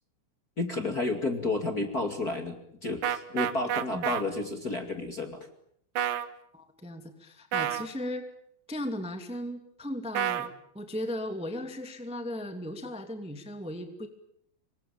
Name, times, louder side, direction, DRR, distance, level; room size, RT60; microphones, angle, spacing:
voice 1, 0.6-5.5, left 2 dB, 35° left, 5 dB, 1.5 m, -31 dB
sound 1, 3.0-4.2 6.0-6.3 7.5-7.9 10.1-10.5, right 10 dB, 60° right, 2.4 m, -28 dB
voice 2, 6.5-8.2 8.7-14.1, left 1 dB, 5° right, 7 dB, 0.5 m, -37 dB
26.5 x 23.5 x 9.0 m, 0.71 s
omnidirectional pair, 5.5 m